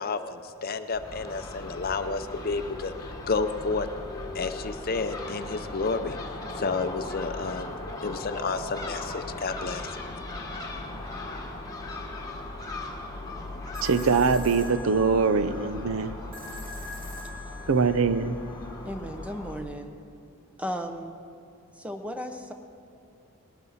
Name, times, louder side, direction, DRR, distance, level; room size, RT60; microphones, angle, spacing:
voice 1, 0.0-3.9 4.3-11.6, left 4 dB, 40° left, 9 dB, 0.6 m, -31 dB
Crow / Gull seagull, 0.9-19.6, left 2 dB, 15° left, 1.4 m, -38 dB
sound 1, 13.7-18.8, left 1 dB, 40° right, 2.3 m, -44 dB
voice 2, 13.8-16.1 17.7-18.4, right 5 dB, 65° right, 13 dB, 0.5 m, -23 dB
voice 3, 18.8-19.9 20.6-21.2 21.7-22.5, equal, 5° right, 6 dB, 0.8 m, -35 dB
19.5 x 12.5 x 4.2 m, 2.5 s
head